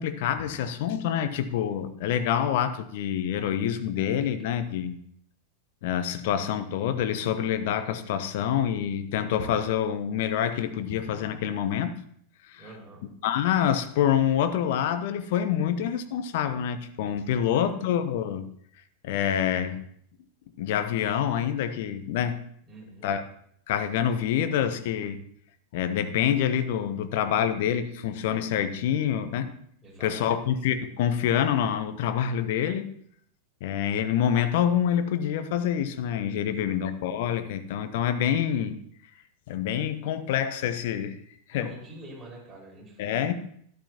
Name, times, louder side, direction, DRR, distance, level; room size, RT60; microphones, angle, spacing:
voice 1, 0.0-5.0 5.8-11.9 12.5-12.6 13.2-18.5 19.0-19.8 20.6-22.4 23.0-23.2 23.7-25.2 25.7-29.5 30.0-32.9 33.6-38.7 39.5-41.2 41.5-41.7 43.0-43.3, left 9 dB, 50° left, 10 dB, 0.9 m, -26 dB
voice 2, 12.6-13.0 17.3-18.0 22.7-23.1 29.8-30.4 36.4-36.9 41.5-43.3, right 2 dB, 10° right, -4 dB, 5.3 m, -47 dB
13.0 x 11.5 x 2.9 m, 0.65 s
figure-of-eight pair, 90°, 0 cm